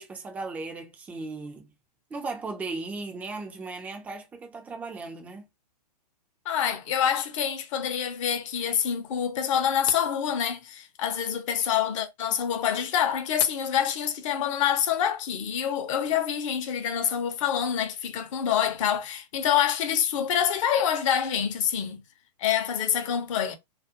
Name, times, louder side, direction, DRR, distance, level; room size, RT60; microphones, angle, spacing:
voice 1, 0.0-1.7 2.1-5.4, right 3 dB, 5° right, 0.4 m, -36 dB
voice 2, 6.5-22.0 22.4-23.5, left 9 dB, 50° left, 0.7 m, -26 dB
2.4 x 2.0 x 2.7 m
hypercardioid pair, 130°, 21 cm